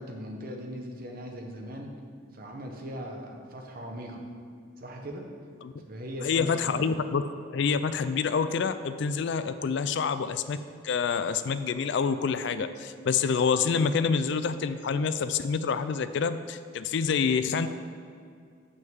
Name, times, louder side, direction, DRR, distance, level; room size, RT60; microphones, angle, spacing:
voice 1, 0.0-1.9 2.3-4.2 4.8-5.3 5.8-7.0, equal, 45° right, 2 dB, 1.0 m, -39 dB
voice 2, 6.2-7.2 7.5-10.6 10.8-17.7, left 5 dB, 55° left, 12 dB, 0.3 m, -27 dB
6.3 x 5.6 x 7.2 m, 2.3 s
head